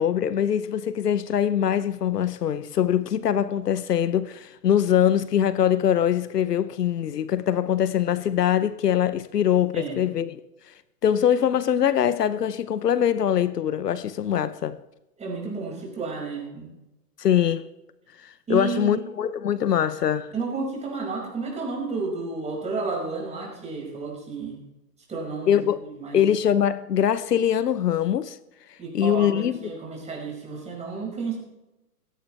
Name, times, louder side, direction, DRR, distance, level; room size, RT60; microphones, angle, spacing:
voice 1, 0.0-10.4 11.0-14.8 17.2-17.7 18.2-20.3 25.5-25.8 26.1-28.4 28.9-29.7, left 9 dB, 75° left, 0.8 m, -23 dB
voice 2, 15.2-16.7 18.5-19.0 20.3-24.6 25.1-25.6 26.0-26.2 28.8-31.4, right 4 dB, 15° right, 5.4 m, -31 dB
16.5 x 16.0 x 3.3 m
figure-of-eight pair, 115°, 48 cm